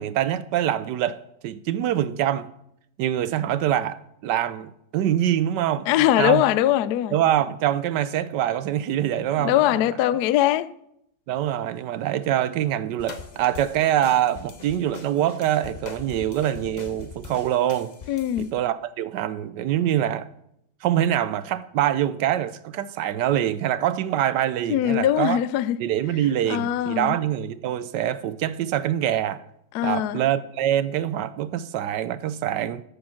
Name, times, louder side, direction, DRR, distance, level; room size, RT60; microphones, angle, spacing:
voice 1, 0.0-2.5 3.0-6.4 7.1-9.7 11.3-17.9 18.4-20.3 20.8-25.4 25.8-29.4 29.8-32.8, right 11 dB, 75° right, 1.1 m, -24 dB
voice 2, 5.9-7.2 9.4-10.7 18.1-18.5 24.7-25.8 26.5-27.2 29.7-30.2, left 12 dB, 75° left, 0.9 m, -21 dB
sound 1, 13.0-18.5, left 5 dB, 45° left, 0.5 m, -41 dB
13.5 x 6.8 x 5.7 m
omnidirectional pair, 2.1 m